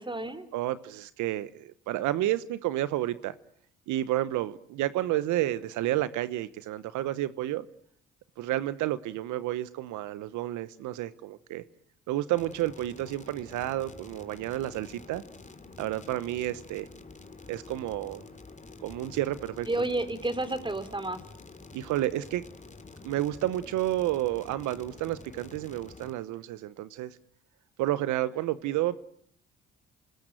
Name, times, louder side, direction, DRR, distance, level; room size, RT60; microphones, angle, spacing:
voice 1, 0.0-0.5 19.7-21.2, right 2 dB, 15° right, 13 dB, 3.8 m, -31 dB
voice 2, 0.5-3.3 3.9-7.6 8.4-11.6 12.1-15.2 15.8-16.9 17.5-18.2 18.8-19.7 21.7-22.4 23.0-27.2 27.8-29.0, right 14 dB, 80° right, 15 dB, 1.1 m, -30 dB
sound 1, 12.4-26.1, left 3 dB, 25° left, 3.3 m, -48 dB
28.5 x 20.0 x 9.1 m, 0.67 s
supercardioid pair, 55°, 29 cm